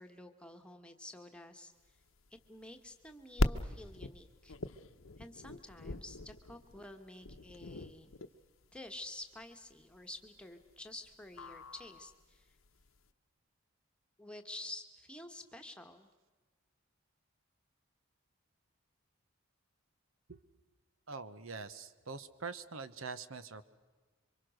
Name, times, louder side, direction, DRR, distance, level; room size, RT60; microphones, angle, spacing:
voice 1, 0.0-1.7 2.5-4.5 5.2-8.1 8.7-12.5 14.2-16.1, left 1 dB, 5° left, 5 dB, 1.4 m, -50 dB
sound 1, 1.9-13.0, left 2 dB, 80° left, 0.9 m, -40 dB
voice 2, 21.1-23.7, right 4 dB, 80° right, 13 dB, 1.1 m, -44 dB
27.0 x 25.0 x 6.5 m, 1.3 s
head